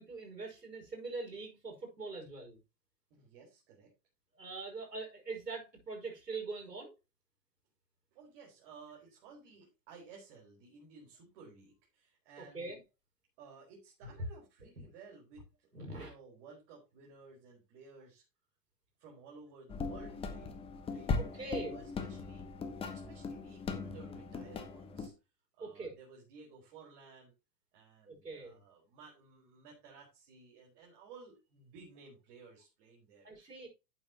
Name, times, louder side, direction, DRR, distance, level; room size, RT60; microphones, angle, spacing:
voice 1, 0.0-2.6 4.4-6.9 12.5-12.8 15.7-16.1 21.2-21.8 25.6-25.9 28.1-28.6 33.2-33.7, right 3 dB, 75° right, 5.7 m, -43 dB
voice 2, 3.1-3.9 8.1-12.7 13.4-18.2 19.0-22.5 22.8-25.1 25.6-27.3 27.7-33.7, right 4 dB, 35° right, 4.8 m, -56 dB
sound 1, 19.7-25.1, left 4 dB, 10° left, 1.2 m, -39 dB
12.0 x 8.6 x 3.0 m
figure-of-eight pair, 105°, 49 cm